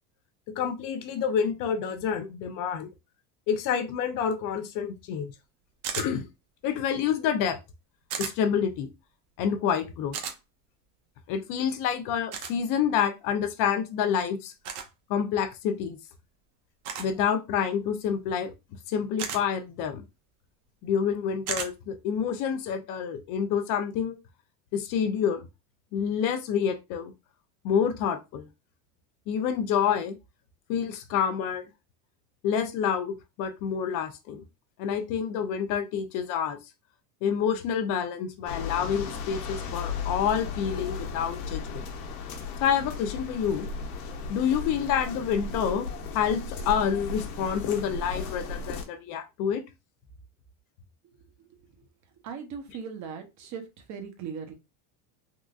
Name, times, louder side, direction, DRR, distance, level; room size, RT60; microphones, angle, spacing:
voice 1, 0.5-2.9 3.5-5.3 6.0-6.3 6.6-7.6 8.2-8.9 9.4-10.2 11.3-14.5 15.1-16.0 17.0-18.5 18.9-20.0 20.8-24.2 24.7-25.5 25.9-27.1 27.6-28.5 29.3-30.1 30.7-31.6 32.4-34.4 34.8-36.6 37.2-41.9 42.6-43.7 44.3-49.6, left 7 dB, 45° left, 0.7 m, -28 dB
sound 1, 5.8-6.1 8.1-8.3 10.1-10.4 12.3-12.5 14.6-14.9 16.8-17.1 19.2-19.4 21.5-21.7, right 7 dB, 75° right, 0.9 m, -33 dB
sound 2, 38.5-48.8, left 4 dB, 75° left, 1.0 m, -35 dB
voice 2, 52.2-54.5, right 6 dB, 40° right, 0.9 m, -38 dB
3.7 x 2.5 x 2.4 m
supercardioid pair, 130°, 45 cm